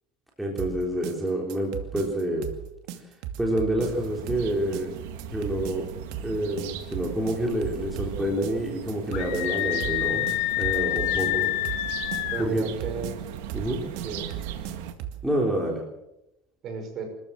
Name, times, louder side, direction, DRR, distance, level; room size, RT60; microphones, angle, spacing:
voice 1, 0.4-2.5 3.4-4.9 5.3-5.9 6.2-10.3 10.6-11.4 12.4-12.7 13.5-13.8 15.2-15.8, right 1 dB, 5° right, -1 dB, 3.7 m, -27 dB
sound 1, 0.6-15.3, right 10 dB, 65° right, 2.4 m, -37 dB
sound 2, 3.8-14.9, right 9 dB, 85° right, 2.1 m, -39 dB
Screaming, 9.1-12.5, left 16 dB, 70° left, 2.1 m, -27 dB
voice 2, 11.2-11.6 12.3-13.2 14.0-14.3 16.6-17.0, right 4 dB, 40° right, 4 dB, 6.7 m, -34 dB
25.0 x 14.0 x 7.6 m, 0.87 s
cardioid pair, 150°, 0 cm